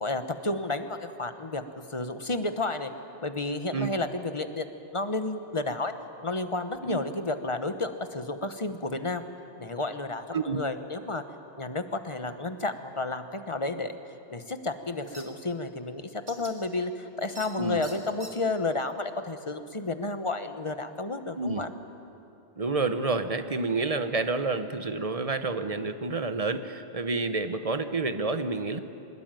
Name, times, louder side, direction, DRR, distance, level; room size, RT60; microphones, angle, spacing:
voice 1, 0.0-1.6 1.9-2.9 3.2-4.7 4.9-5.9 6.2-9.2 9.6-11.2 11.6-13.9 14.3-21.7, left 2 dB, 30° left, 9 dB, 1.1 m, -31 dB
sound 1, 15.1-15.2 16.3-16.5 17.4-17.5 17.8-18.3, right 2 dB, 55° right, 2.5 m, -43 dB
voice 2, 22.6-28.8, right 3 dB, 35° right, 9 dB, 1.1 m, -29 dB
23.0 x 20.5 x 9.1 m, 2.8 s
omnidirectional pair, 1.1 m